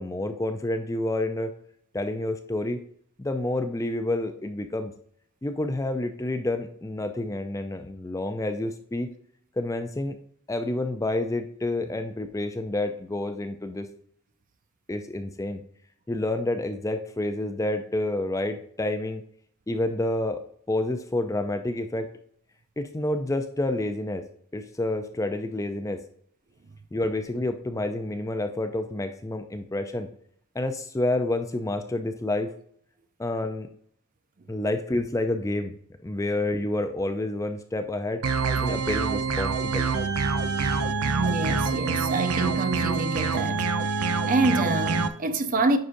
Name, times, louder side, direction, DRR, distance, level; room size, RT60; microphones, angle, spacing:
voice 1, 0.0-1.5 1.9-2.8 3.2-4.9 5.4-9.1 9.6-10.2 10.5-13.9 14.9-15.6 16.1-19.2 19.7-20.4 20.7-22.1 22.8-24.2 24.5-26.0 26.9-30.1 30.5-32.5 33.2-33.7 34.5-35.7 36.0-38.2 38.6-39.9, left 2 dB, 15° left, 0.4 m, -29 dB
sound 1, 38.2-45.1, right 4 dB, 90° right, 0.6 m, -26 dB
voice 2, 41.0-43.7 44.3-45.8, right 2 dB, 35° right, 0.5 m, -26 dB
9.4 x 5.0 x 2.6 m
head